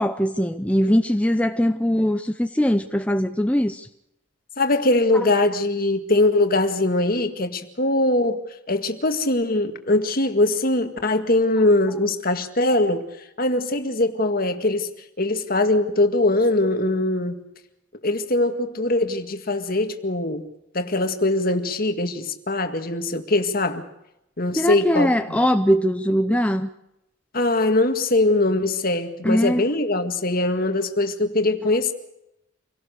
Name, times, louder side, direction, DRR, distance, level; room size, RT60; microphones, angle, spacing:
voice 1, 0.0-3.9 24.6-26.7 29.2-29.6, equal, 5° left, 0.7 m, -21 dB
voice 2, 4.6-13.1 13.4-14.9 15.2-17.4 18.0-20.4 20.7-23.9 24.4-25.4 27.3-31.9, left 2 dB, 45° left, 2.1 m, -22 dB
27.5 x 18.0 x 6.7 m
head